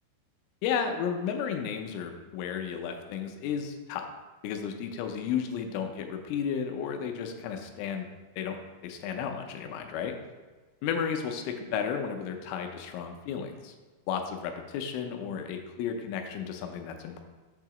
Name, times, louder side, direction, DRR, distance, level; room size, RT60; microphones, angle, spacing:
voice 1, 0.6-4.1 4.4-8.1 8.4-10.1 10.8-13.7 14.1-17.2, left 7 dB, 85° left, 5 dB, 3.2 m, -33 dB
7.7 x 2.8 x 5.9 m, 1.3 s
omnidirectional pair, 5.5 m